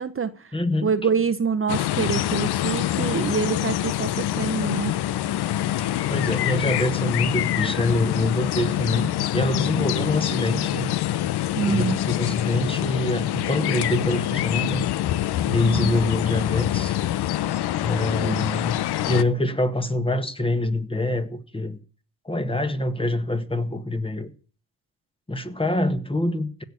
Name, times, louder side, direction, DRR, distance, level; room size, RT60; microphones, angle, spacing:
voice 1, 0.0-0.5 0.8-5.0 11.5-12.0 15.6-15.9 18.2-18.3, right 6 dB, 30° right, 1.0 m, -26 dB
voice 2, 0.5-0.9 6.1-10.9 11.6-14.8 15.5-17.0 17.8-21.8 22.3-24.3 25.3-26.6, left 1 dB, 15° left, 1.6 m, -25 dB
sound 1, 1.7-19.2, left 13 dB, 65° left, 0.8 m, -25 dB
16.0 x 6.7 x 8.2 m
cardioid pair, 80°, 42 cm